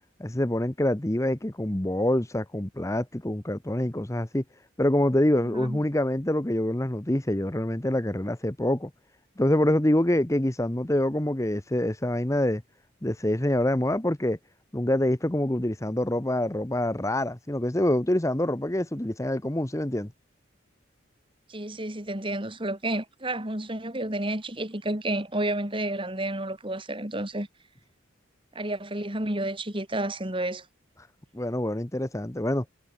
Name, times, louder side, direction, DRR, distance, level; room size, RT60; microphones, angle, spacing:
voice 1, 0.2-4.4 4.8-8.9 9.4-12.6 13.0-14.4 14.7-20.1 31.3-32.6, left 1 dB, 15° left, 0.9 m, -26 dB
voice 2, 5.4-5.8 21.5-27.5 28.5-30.6, right 1 dB, 25° right, 3.0 m, -31 dB
head